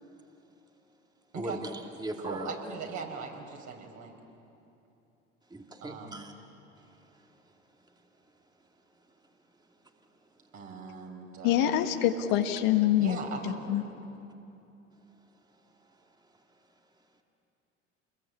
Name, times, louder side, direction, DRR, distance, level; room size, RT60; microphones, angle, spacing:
voice 1, 1.3-2.6 5.5-6.3 6.8-7.3 7.8-7.9, right 1 dB, 10° right, 2 dB, 2.3 m, -40 dB
voice 2, 2.2-4.1 5.8-6.3 10.5-11.9 13.0-13.8, right 5 dB, 50° right, 1 dB, 5.1 m, -40 dB
voice 3, 11.4-13.2 13.4-13.8, left 11 dB, 65° left, 6 dB, 1.7 m, -25 dB
27.5 x 21.5 x 8.4 m, 2.8 s
hypercardioid pair, 70°, 37 cm